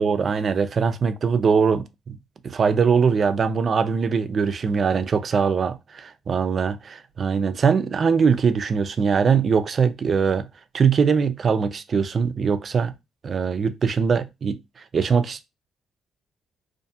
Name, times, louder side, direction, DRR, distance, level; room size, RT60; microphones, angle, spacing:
voice 1, 0.0-2.2 2.4-10.5 10.7-12.9 13.2-14.6 14.9-15.4, right 6 dB, 45° right, 0.3 m, -21 dB
2.4 x 2.3 x 2.6 m
cardioid pair, 90°, 0 cm